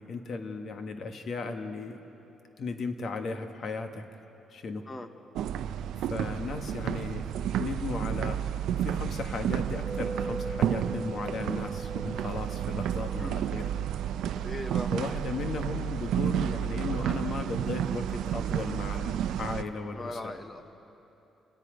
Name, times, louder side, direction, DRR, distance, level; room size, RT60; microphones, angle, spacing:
voice 1, 0.0-2.0 2.6-4.0 4.5-4.8 6.0-7.3 7.6-8.4 8.7-13.7 14.9-20.3, left 4 dB, 55° left, 6 dB, 1.5 m, -36 dB
sound 1, 5.3-19.6, right 10 dB, 85° right, 0.6 m, -31 dB
sound 2, 9.9-14.2, right 2 dB, 35° right, 0.6 m, -41 dB
voice 2, 14.4-14.9 19.9-20.6, left 1 dB, 20° left, 8 dB, 1.1 m, -38 dB
29.5 x 18.5 x 5.1 m, 3.0 s
cardioid pair, 115°, 0 cm